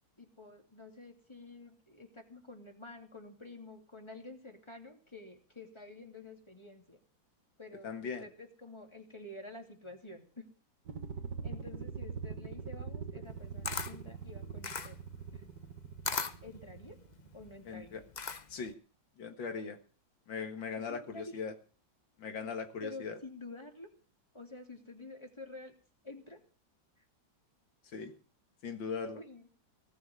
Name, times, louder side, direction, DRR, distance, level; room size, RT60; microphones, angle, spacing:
voice 1, 0.2-7.0 7.6-10.5 11.4-15.0 15.3-15.4 16.4-17.0 17.3-18.0 20.9-21.4 22.8-23.9 24.3-25.7 26.0-26.4 29.0-29.5, left 2 dB, 15° left, 4 dB, 2.9 m, -49 dB
voice 2, 7.8-8.3 17.7-18.0 18.5-18.7 19.2-19.8 20.3-21.5 22.2-23.2 27.9-28.1 28.6-29.2, left 5 dB, 75° left, 7 dB, 2.4 m, -39 dB
sound 1, 10.9-17.6, right 6 dB, 65° right, 1.9 m, -43 dB
Camera, 13.3-18.7, left 5 dB, 40° left, 0.6 m, -40 dB
19.0 x 6.7 x 9.6 m, 0.38 s
omnidirectional pair, 2.1 m